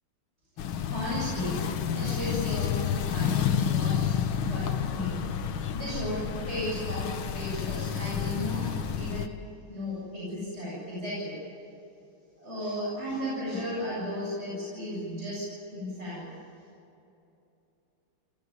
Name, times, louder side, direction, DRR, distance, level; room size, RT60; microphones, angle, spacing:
sound 1, 0.6-9.3, left 8 dB, 90° left, 1.9 m, -30 dB
voice 1, 0.8-5.2 5.7-8.7 8.9-9.3 9.7-11.4 12.4-15.4 15.7-16.3, left 1 dB, 30° right, -6 dB, 8.3 m, -34 dB
29.0 x 17.0 x 9.6 m, 2.8 s
omnidirectional pair, 2.2 m